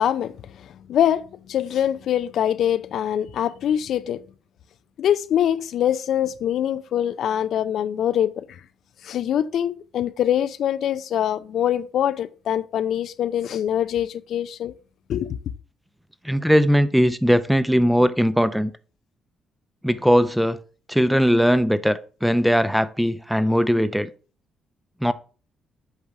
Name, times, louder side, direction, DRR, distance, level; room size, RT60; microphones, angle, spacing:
voice 1, 0.0-4.2 5.0-8.5 9.0-14.7 15.1-15.4, left 10 dB, 70° left, 0.4 m, -24 dB
voice 2, 16.2-18.7 19.8-20.6 20.9-24.1 25.0-25.1, equal, ahead, 0.6 m, -19 dB
8.2 x 3.4 x 5.8 m
cardioid pair, 90°, 0 cm